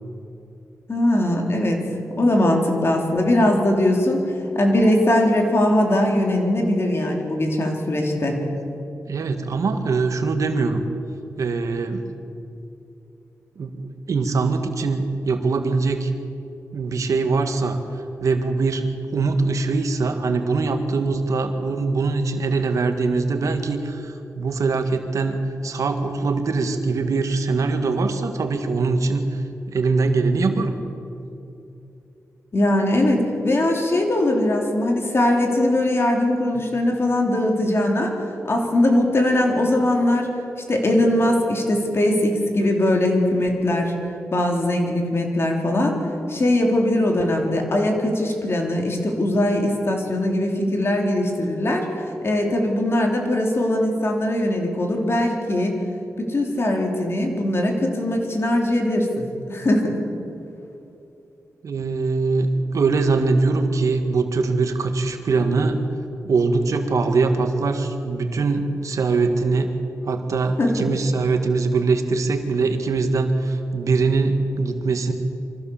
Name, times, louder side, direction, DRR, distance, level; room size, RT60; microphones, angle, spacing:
voice 1, 0.9-1.8 2.2-8.5 32.5-38.1 38.4-40.3 40.7-43.9 44.3-46.0 46.3-55.8 56.2-60.0 70.6-70.8, left 1 dB, 50° left, 1 dB, 3.6 m, -21 dB
voice 2, 9.1-10.9 11.4-12.1 13.6-16.1 16.7-17.8 18.2-29.4 29.7-30.8 61.6-65.8 66.2-69.7 70.1-75.1, right 3 dB, 75° right, 6 dB, 1.8 m, -22 dB
24.0 x 15.0 x 7.3 m, 2.8 s
cardioid pair, 60°, 6 cm